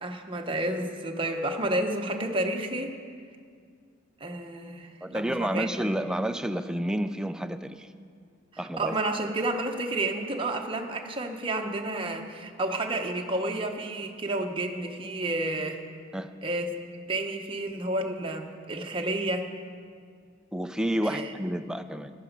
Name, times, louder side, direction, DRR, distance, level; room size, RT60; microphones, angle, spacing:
voice 1, 0.0-3.0 4.2-5.7 8.5-15.8 16.4-16.7 17.1-19.5 21.0-21.3, right 2 dB, 25° right, 3 dB, 0.9 m, -30 dB
voice 2, 5.0-7.9 8.6-9.0 16.1-16.3 20.5-22.1, equal, 5° right, 9 dB, 0.4 m, -30 dB
14.0 x 11.0 x 5.2 m, 2.2 s
head